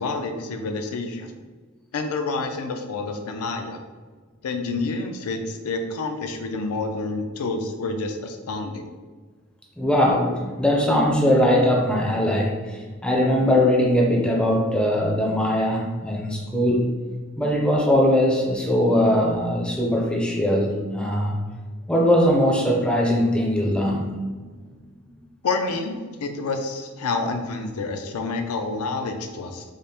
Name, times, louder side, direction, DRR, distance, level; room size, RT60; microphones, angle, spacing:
voice 1, 0.0-1.4 1.9-3.8 4.4-8.9 25.4-29.6, left 3 dB, 80° left, 6 dB, 0.4 m, -28 dB
voice 2, 9.8-16.9 17.4-21.4 21.9-24.1, equal, 5° left, -2 dB, 0.4 m, -20 dB
4.9 x 2.0 x 2.8 m, 1.4 s
head